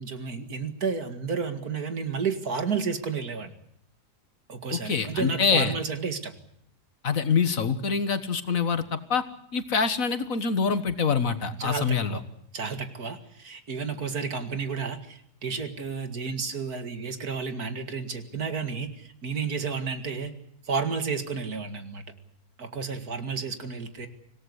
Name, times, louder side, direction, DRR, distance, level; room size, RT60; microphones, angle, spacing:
voice 1, 0.0-3.5 4.5-6.3 11.6-12.2 12.5-20.3 20.6-22.1 22.6-24.1, right 5 dB, 65° right, 8 dB, 2.5 m, -31 dB
voice 2, 4.7-5.8 7.0-9.2 9.5-12.2, left 5 dB, 55° left, 11 dB, 1.8 m, -25 dB
25.5 x 18.0 x 8.1 m, 0.73 s
omnidirectional pair, 1.7 m